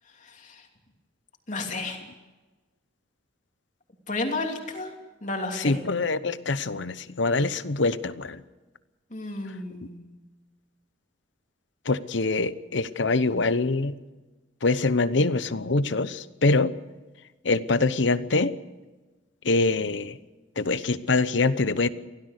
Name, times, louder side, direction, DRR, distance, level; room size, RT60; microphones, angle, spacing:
voice 1, 0.1-0.7 1.5-2.0 4.1-4.9 5.2-5.8 9.1-10.2, left 2 dB, 40° left, 3 dB, 2.9 m, -32 dB
voice 2, 5.6-8.4 11.9-13.9 14.6-16.7 17.4-18.5 19.4-20.2 20.6-21.9, left 3 dB, 70° left, 15 dB, 0.9 m, -24 dB
24.0 x 17.0 x 6.7 m, 1.2 s
head